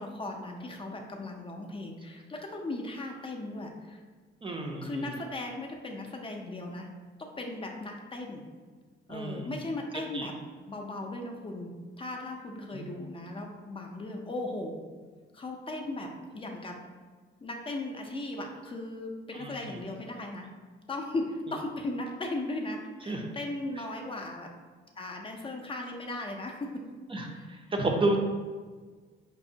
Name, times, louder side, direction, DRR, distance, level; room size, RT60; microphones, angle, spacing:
voice 1, 0.0-4.0 4.8-6.9 7.2-8.4 9.1-10.3 10.7-11.7 12.0-14.8 15.3-16.8 17.4-20.5 20.9-24.5 25.0-26.8 27.3-28.2, left 2 dB, 25° left, 1 dB, 0.4 m, -37 dB
voice 2, 4.4-5.1 9.1-9.5 10.1-10.3 12.7-12.9 19.4-19.5 23.1-23.3 27.1-28.2, right 2 dB, 25° right, 2 dB, 0.5 m, -31 dB
5.2 x 2.1 x 2.6 m, 1.5 s
cardioid pair, 90°, 20 cm